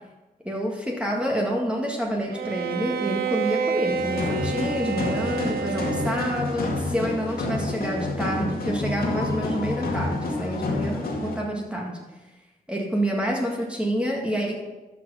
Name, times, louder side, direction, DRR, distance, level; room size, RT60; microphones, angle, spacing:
voice 1, 0.4-12.0 12.7-14.5, equal, 5° right, -2 dB, 1.9 m, -28 dB
Bowed string instrument, 2.3-6.7, right 6 dB, 85° right, 0.7 m, -29 dB
sound 1, 3.9-11.4, left 2 dB, 80° left, 2.1 m, -29 dB
13.0 x 4.9 x 5.6 m, 1.1 s
cardioid pair, 70°, 16 cm